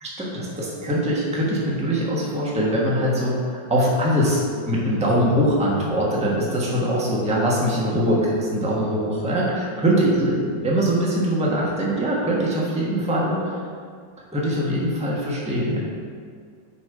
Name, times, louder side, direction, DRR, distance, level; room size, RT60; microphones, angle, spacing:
voice 1, 0.0-13.6 14.3-15.8, equal, 5° right, -5 dB, 0.8 m, -22 dB
7.1 x 5.2 x 5.0 m, 2.1 s
omnidirectional pair, 2.4 m